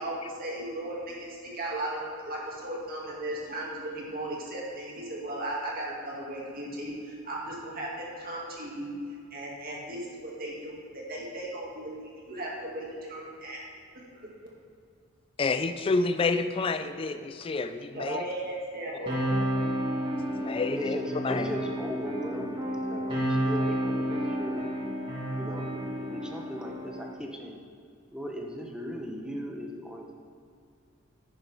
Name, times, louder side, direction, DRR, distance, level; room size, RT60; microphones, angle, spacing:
voice 1, 0.0-8.9 9.3-13.6 14.1-14.3 17.9-19.2, right 1 dB, 45° right, -4 dB, 2.2 m, -36 dB
voice 2, 15.4-18.3 20.3-21.0 21.2-21.5, left 3 dB, 25° left, 9 dB, 0.3 m, -28 dB
sound 1, 19.1-27.1, equal, 25° right, 1.8 m, -31 dB
voice 3, 20.8-24.7 25.3-27.6 28.1-30.1, equal, 5° right, 1 dB, 0.9 m, -38 dB
11.0 x 9.7 x 3.5 m, 2.4 s
head